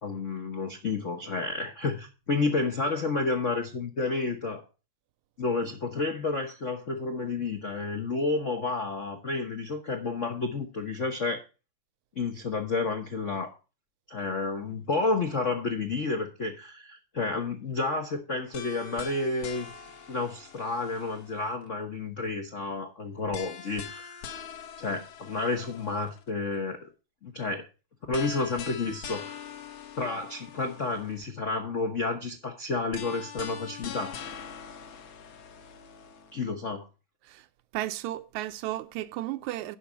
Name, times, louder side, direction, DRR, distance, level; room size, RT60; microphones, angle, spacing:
voice 1, 0.0-4.6 5.4-11.4 12.2-13.5 14.1-19.7 20.1-24.4 24.8-26.9 27.2-27.7 28.1-29.4 30.0-34.1 36.3-36.9, left 3 dB, 80° left, 0.6 m, -30 dB
sound 1, 18.5-21.7 23.3-26.3 28.1-31.3 32.9-36.4, left 7 dB, 65° left, 2.1 m, -43 dB
voice 2, 37.7-39.8, right 15 dB, 85° right, 2.0 m, -34 dB
11.0 x 4.8 x 7.3 m
omnidirectional pair, 3.3 m